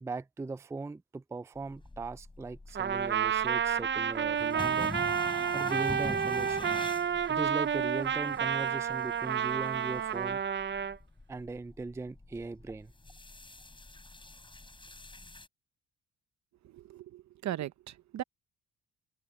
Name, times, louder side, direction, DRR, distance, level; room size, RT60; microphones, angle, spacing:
voice 1, 0.0-4.9 5.5-6.7 7.3-10.4 11.3-12.9, right 3 dB, 10° right, 0.4 m, -39 dB
sound 1, 1.6-15.5, left 2 dB, 15° left, 7.7 m, -46 dB
Trumpet, 2.7-11.0, right 8 dB, 40° right, 0.7 m, -30 dB
voice 2, 16.7-18.2, right 12 dB, 65° right, 1.0 m, -38 dB
cardioid pair, 90°, 30 cm